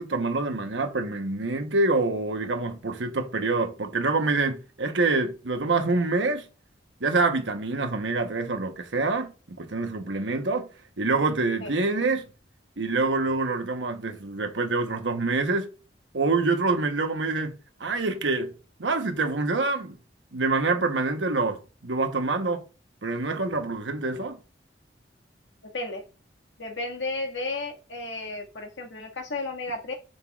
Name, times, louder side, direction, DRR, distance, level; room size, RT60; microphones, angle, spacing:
voice 1, 0.0-6.5 7.0-10.7 11.0-12.3 12.8-15.7 16.1-17.5 17.8-18.5 18.8-20.0 20.3-22.6 23.0-24.4, right 3 dB, 80° right, 1.0 m, -26 dB
voice 2, 26.6-29.9, left 2 dB, 90° left, 1.8 m, -33 dB
7.1 x 6.7 x 2.4 m
head